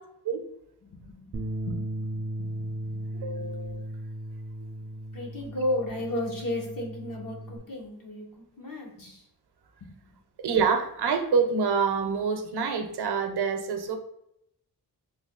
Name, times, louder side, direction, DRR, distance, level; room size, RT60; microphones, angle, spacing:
voice 1, 0.8-3.0 3.8-3.9 5.1-9.3 9.8-9.9, left 1 dB, 60° left, -1 dB, 1.0 m, -34 dB
Bass guitar, 1.3-7.6, right 1 dB, 35° right, 0.4 m, -36 dB
voice 2, 3.1-3.8 10.4-14.0, right 5 dB, 90° right, 7 dB, 0.6 m, -26 dB
3.3 x 2.3 x 3.6 m, 0.77 s
wide cardioid pair, 155°, 38 cm